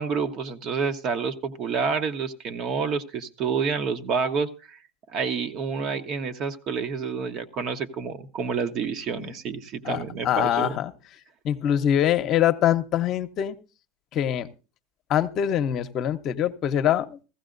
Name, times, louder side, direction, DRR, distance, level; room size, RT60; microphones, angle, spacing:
voice 1, 0.0-4.8 5.1-10.7, right 5 dB, 50° right, 9 dB, 1.1 m, -28 dB
voice 2, 9.8-10.9 11.4-13.6 14.1-14.5 15.1-17.2, left 10 dB, 45° left, 9 dB, 0.8 m, -24 dB
15.5 x 15.0 x 2.6 m, 0.32 s
supercardioid pair, 105°, 0 cm